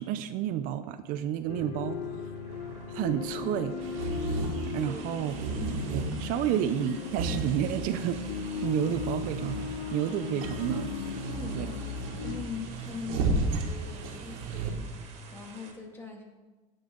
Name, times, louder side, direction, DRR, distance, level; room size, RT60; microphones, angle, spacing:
voice 1, 0.0-2.3 2.9-3.8 4.7-5.3 5.9-8.3 8.6-11.2 11.5-11.7, right 11 dB, 55° right, 10 dB, 0.5 m, -31 dB
sound 1, 1.5-12.4, left 6 dB, 70° left, 0.9 m, -37 dB
sound 2, 1.8-15.7, right 4 dB, 40° right, 1.8 m, -50 dB
sound 3, 3.8-14.7, right 3 dB, 85° right, 1.7 m, -34 dB
voice 2, 4.8-5.3 11.2-11.9 12.2-16.2, left 4 dB, 15° left, 0 dB, 1.9 m, -42 dB
16.0 x 5.5 x 3.7 m, 1.3 s
cardioid pair, 145°, 17 cm